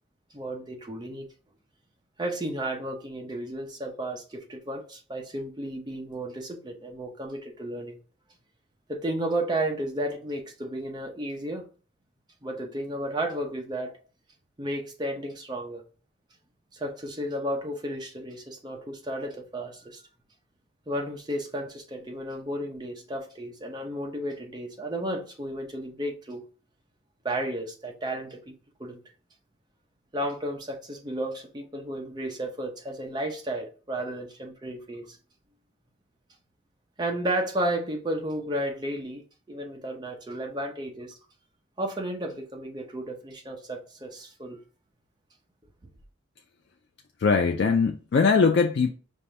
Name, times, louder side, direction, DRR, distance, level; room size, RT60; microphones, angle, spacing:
voice 1, 0.3-1.3 2.2-8.0 8.9-11.7 12.4-14.0 14.6-15.8 16.7-20.0 20.9-26.4 27.2-28.5 28.8-29.0 30.1-35.2 37.0-39.2 39.5-41.1 41.8-44.6 45.8-45.9, right 1 dB, 20° right, 0.7 m, -33 dB
voice 2, 47.2-48.9, left 5 dB, 60° left, 0.3 m, -21 dB
5.4 x 2.6 x 3.2 m
head